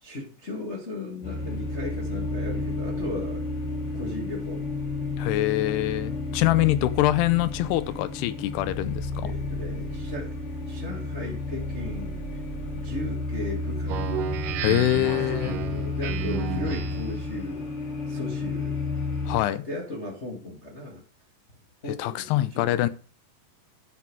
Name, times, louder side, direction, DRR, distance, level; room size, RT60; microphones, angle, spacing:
voice 1, 0.0-3.4 3.9-4.6 9.2-10.3 10.6-12.4 12.7-14.0 15.3-17.6 18.0-18.8 19.5-21.0 21.8-22.9, left 2 dB, 40° left, 0.9 m, -36 dB
sound 1, 1.2-19.4, left 3 dB, 65° left, 6.3 m, -32 dB
voice 2, 5.2-9.3 14.6-15.6 19.3-19.6 22.0-22.9, left 15 dB, 80° left, 2.7 m, -24 dB
Speech synthesizer, 13.9-17.2, right 10 dB, 75° right, 2.1 m, -32 dB
11.5 x 6.2 x 4.7 m
omnidirectional pair, 4.8 m